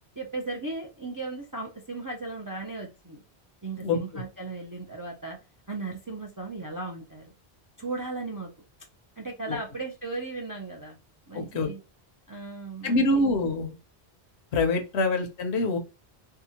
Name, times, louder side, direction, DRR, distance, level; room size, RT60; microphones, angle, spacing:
voice 1, 0.2-3.2 3.6-5.4 5.7-7.3 7.8-8.5 9.2-11.0 11.3-11.8 12.3-13.2, right 3 dB, 35° right, 0 dB, 0.3 m, -36 dB
voice 2, 3.8-4.2 9.5-9.6 11.3-11.7 12.8-13.7 14.5-15.8, left 2 dB, 90° left, 6 dB, 1.0 m, -25 dB
2.7 x 2.3 x 2.8 m, 0.29 s
omnidirectional pair, 1.1 m